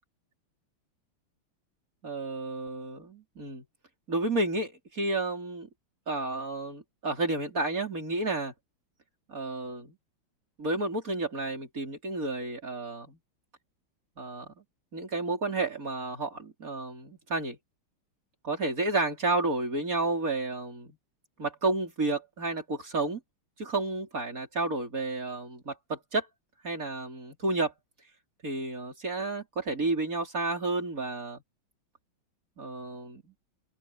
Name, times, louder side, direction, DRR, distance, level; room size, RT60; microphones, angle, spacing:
voice 1, 2.0-3.6 4.1-5.7 6.1-8.5 9.3-10.0 10.6-13.2 14.2-14.5 14.9-17.6 18.4-21.0 21.4-23.2 23.6-26.3 26.6-27.7 28.4-31.4 32.6-33.3, right 2 dB, 40° right, 5.0 m, -31 dB
omnidirectional pair, 2.3 m